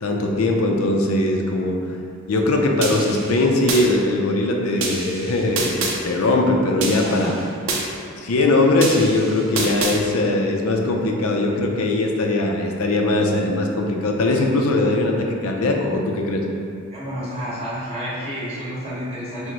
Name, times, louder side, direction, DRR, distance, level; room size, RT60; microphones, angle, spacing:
voice 1, 0.0-1.8 2.3-7.3 8.2-16.4, left 2 dB, 80° left, 1 dB, 0.5 m, -20 dB
sound 1, 2.8-3.8 4.8-6.0 6.8-7.8 8.8-10.0, right 3 dB, 70° right, 0.6 m, -26 dB
voice 2, 16.9-19.5, equal, 30° right, -9 dB, 1.2 m, -30 dB
4.6 x 2.1 x 3.8 m, 2.3 s
head